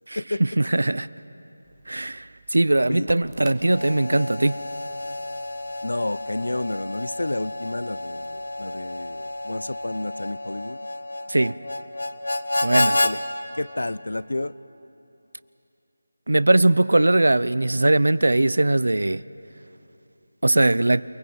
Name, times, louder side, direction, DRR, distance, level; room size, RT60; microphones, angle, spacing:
voice 1, 0.1-1.1 1.9-2.3 2.5-4.6 11.3-11.5 12.6-13.0 16.3-19.2 20.4-21.0, right 2 dB, 85° right, 17 dB, 0.5 m, -20 dB
Crackle, 1.6-9.9, right 4 dB, 10° right, 0.9 m, -52 dB
Harmonica, 3.6-13.1, left 2 dB, 60° left, 1.2 m, -30 dB
voice 2, 5.8-10.8 13.0-13.2 13.5-14.5, left 2 dB, 90° left, 18 dB, 0.6 m, -30 dB
28.5 x 20.5 x 7.9 m, 2.9 s
figure-of-eight pair, 180°, 0 cm